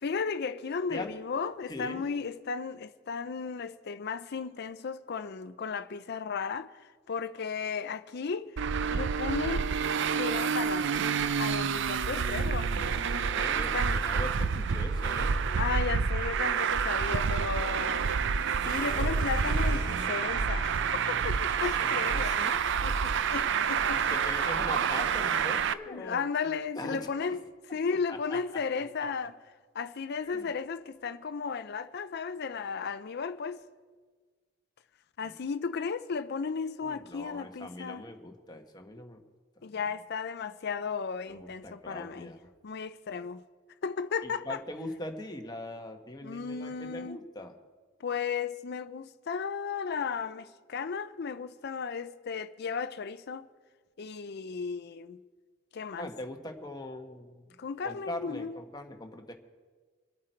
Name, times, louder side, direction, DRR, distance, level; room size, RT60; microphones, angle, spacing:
voice 1, 0.0-8.5 8.9-9.7 10.2-10.9 11.4-12.7 13.6-14.0 15.6-18.1 18.6-22.4 22.8-24.0 24.3-24.5 25.9-27.4 27.7-29.4 29.7-33.6 35.2-38.1 39.6-42.3 42.6-43.4 43.8-44.6 46.2-47.2 48.0-53.5 54.0-55.2 55.7-56.1 57.6-58.6, left 5 dB, 55° left, 0.5 m, -35 dB
voice 2, 1.7-2.1 12.4-15.4 21.8-22.6 23.9-26.2 26.7-27.3 28.1-28.4 30.2-30.5 36.8-39.2 39.7-39.8 41.3-42.4 44.2-47.6 56.0-57.4 57.8-59.3, left 1 dB, 20° left, 1.2 m, -41 dB
Traffic noise roadway noise, 8.6-25.7, right 6 dB, 65° right, 0.5 m, -28 dB
sound 1, 18.7-23.4, right 1 dB, 40° right, 2.2 m, -44 dB
25.0 x 8.7 x 4.5 m
head